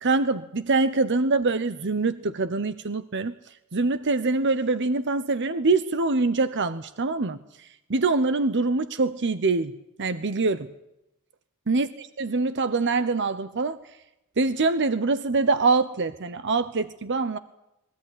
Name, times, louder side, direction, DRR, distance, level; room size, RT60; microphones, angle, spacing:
voice 1, 0.0-3.3 3.7-7.4 7.9-9.7 10.0-10.7 11.7-13.8 14.4-17.4, right 3 dB, 55° right, 13 dB, 0.9 m, -24 dB
22.0 x 16.5 x 10.0 m, 0.88 s
head